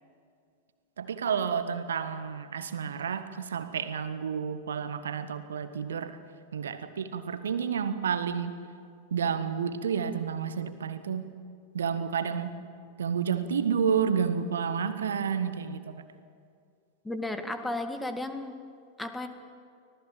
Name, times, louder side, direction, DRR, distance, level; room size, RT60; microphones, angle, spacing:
voice 1, 1.0-6.2 6.5-8.6 9.1-11.3 11.7-12.6 13.0-16.0, right 7 dB, 65° right, 11 dB, 1.4 m, -30 dB
voice 2, 17.0-18.5 19.0-19.3, left 2 dB, 5° left, 7 dB, 1.9 m, -34 dB
25.0 x 18.5 x 7.5 m, 2.3 s
figure-of-eight pair, 90°, 0 cm